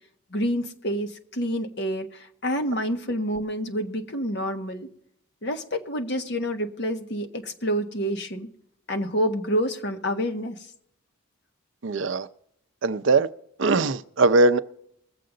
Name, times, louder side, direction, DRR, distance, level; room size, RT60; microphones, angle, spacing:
voice 1, 0.3-4.9 5.4-8.5 8.9-10.6, equal, 50° left, 1.3 m, -28 dB
voice 2, 11.8-12.3 12.8-13.3 13.6-14.6, right 3 dB, 60° right, 0.5 m, -20 dB
22.0 x 7.7 x 3.9 m
head